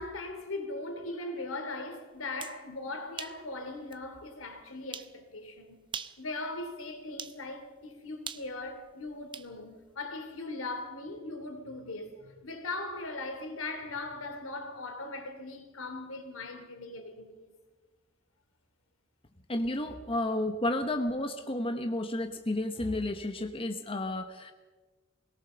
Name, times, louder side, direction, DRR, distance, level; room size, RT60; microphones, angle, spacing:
voice 1, 0.0-5.8 6.2-17.5, left 2 dB, 85° left, 2.9 m, -39 dB
sound 1, 2.2-2.6 3.2-3.4 3.9-4.0 4.9-5.1 5.8-6.2 7.2-7.4 8.3-9.5, right 6 dB, 25° right, 0.7 m, -41 dB
voice 2, 19.5-24.5, left 1 dB, 25° left, 1.0 m, -32 dB
21.0 x 18.0 x 6.8 m
head